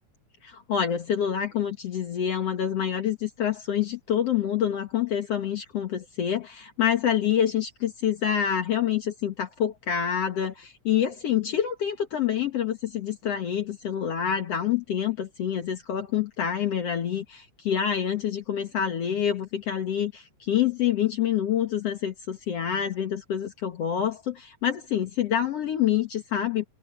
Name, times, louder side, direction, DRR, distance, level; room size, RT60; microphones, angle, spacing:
voice 1, 0.4-26.6, left 9 dB, 60° left, 2.4 m, -27 dB
omnidirectional pair, 3.3 m